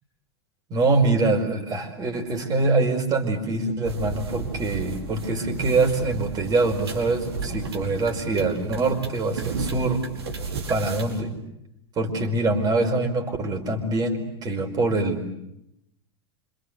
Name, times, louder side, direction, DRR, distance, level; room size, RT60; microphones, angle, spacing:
voice 1, 0.7-10.0 10.7-11.3 11.9-15.3, right 3 dB, 30° right, 4 dB, 5.1 m, -24 dB
sound 1, 3.8-11.2, right 4 dB, 70° right, 5.2 m, -33 dB
27.0 x 27.0 x 8.2 m, 0.82 s
figure-of-eight pair, 85°, 14 cm